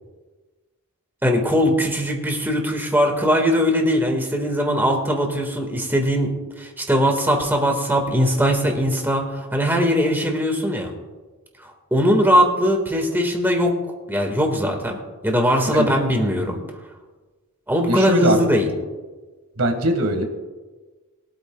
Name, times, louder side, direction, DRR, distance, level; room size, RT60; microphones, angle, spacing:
voice 1, 1.2-6.3 6.6-10.9 11.9-13.7 14.1-15.0 15.2-16.6 17.7-18.7, equal, 10° right, 2 dB, 1.7 m, -20 dB
voice 2, 17.9-18.4 19.6-20.2, right 1 dB, 70° right, 5 dB, 1.7 m, -20 dB
22.5 x 8.8 x 2.3 m, 1.3 s
head